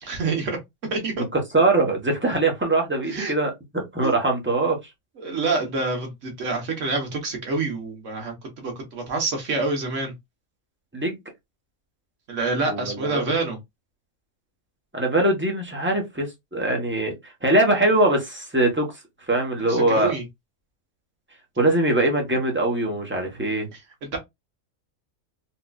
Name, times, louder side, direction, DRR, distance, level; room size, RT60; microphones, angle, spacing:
voice 1, 0.0-0.6 0.9-1.2 3.0-3.3 4.0-4.1 5.2-10.1 12.3-13.6 19.7-20.2 22.3-22.4 23.7-24.2, right 3 dB, 60° right, 1.5 m, -27 dB
voice 2, 1.3-4.8 10.9-11.2 12.7-13.3 14.9-16.3 16.5-17.1 17.4-18.9 19.3-20.1 21.6-23.7, right 2 dB, 10° right, 0.9 m, -22 dB
4.3 x 2.4 x 2.3 m
omnidirectional pair, 1.5 m